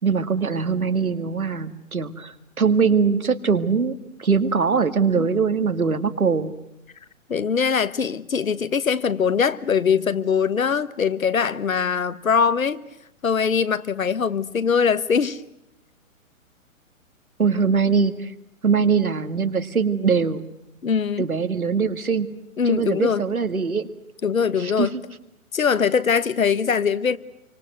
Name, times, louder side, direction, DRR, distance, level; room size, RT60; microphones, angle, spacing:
voice 1, 0.0-6.5 17.4-18.3 18.6-20.4 21.2-22.3 22.7-23.9 24.6-24.9, right 5 dB, 85° right, 2.2 m, -22 dB
voice 2, 7.3-12.8 13.2-15.4 20.8-21.2 22.6-23.2 24.2-24.9 25.5-27.2, left 6 dB, 70° left, 1.4 m, -22 dB
28.5 x 25.0 x 7.9 m
figure-of-eight pair, 125°, 42 cm